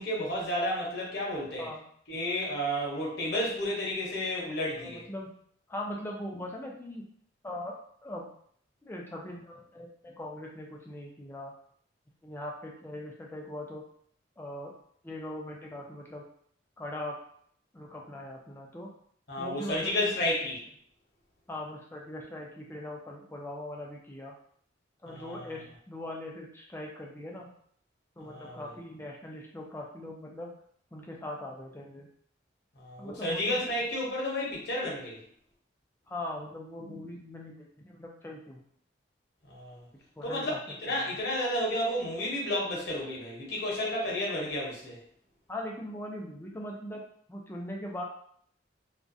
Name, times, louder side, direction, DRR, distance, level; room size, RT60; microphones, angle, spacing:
voice 1, 0.0-1.7 2.1-5.0 19.3-20.6 25.1-25.6 28.2-28.7 32.8-35.2 39.5-39.9 40.2-40.5 40.8-45.0, left 1 dB, 60° left, -4 dB, 0.8 m, -32 dB
voice 2, 4.8-5.3 5.7-7.1 7.4-7.7 8.0-8.3 8.8-11.5 12.2-13.8 14.4-14.7 15.0-16.3 16.8-17.2 17.7-18.9 19.4-20.2 21.5-24.3 25.0-27.5 28.2-30.5 30.9-32.1 33.0-33.6 36.1-38.6 40.2-40.6 45.5-47.0 47.3-48.0, left 1 dB, 10° left, -1 dB, 0.3 m, -40 dB
2.3 x 2.1 x 2.5 m, 0.62 s
head